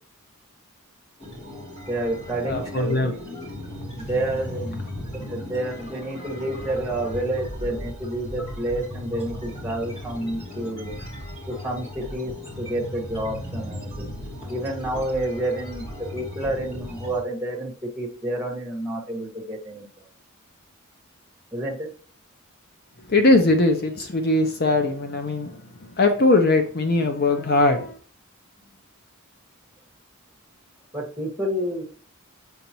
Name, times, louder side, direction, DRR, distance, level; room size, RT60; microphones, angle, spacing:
sound 1, 1.2-17.2, left 1 dB, 25° left, 2.9 m, -36 dB
voice 1, 1.9-3.1 4.1-4.8 5.1-11.0 11.5-12.3 12.6-14.1 14.5-19.8 21.5-21.9 30.9-31.8, right 1 dB, 10° right, -3 dB, 1.7 m, -29 dB
voice 2, 2.4-3.2 23.1-25.5 26.0-28.0, left 2 dB, 45° left, 5 dB, 0.6 m, -20 dB
7.7 x 5.4 x 3.0 m, 0.42 s
head